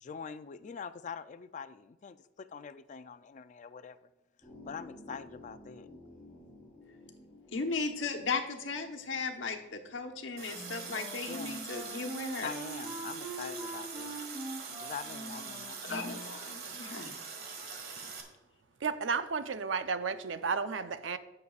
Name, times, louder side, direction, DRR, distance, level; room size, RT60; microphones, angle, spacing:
voice 1, 0.0-4.0 4.6-5.9 11.3-11.6 12.4-14.2 14.8-15.8, left 6 dB, 40° left, 12 dB, 0.4 m, -44 dB
sound 1, 4.4-11.4, left 2 dB, 10° left, 3.5 m, -55 dB
voice 2, 7.5-12.5 15.8-17.2, left 4 dB, 85° left, 4 dB, 1.1 m, -36 dB
Water tap faucet, 10.4-18.2, right 5 dB, 55° right, 1.5 m, -43 dB
Wind instrument woodwind instrument, 10.5-16.4, right 1 dB, 20° right, 3.3 m, -43 dB
voice 3, 18.8-21.2, right 5 dB, 80° right, 11 dB, 0.6 m, -33 dB
16.0 x 6.8 x 2.4 m, 1.0 s
head